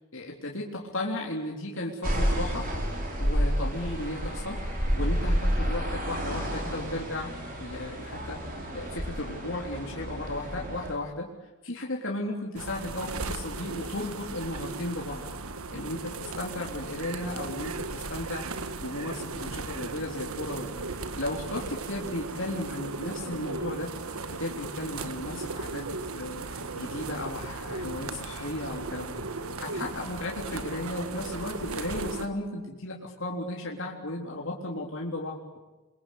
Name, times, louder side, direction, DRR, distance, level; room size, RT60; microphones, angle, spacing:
voice 1, 0.1-2.7 3.2-11.3 11.6-15.2 15.7-18.5 18.8-20.8 21.2-23.9 24.4-25.9 26.1-26.4 26.7-35.6, left 1 dB, 60° left, -1 dB, 3.6 m, -35 dB
sound 1, 2.0-10.9, equal, 40° right, 5.9 m, -30 dB
sound 2, 12.6-32.3, right 3 dB, 70° right, 1.6 m, -36 dB
28.0 x 23.5 x 8.4 m, 1.1 s
head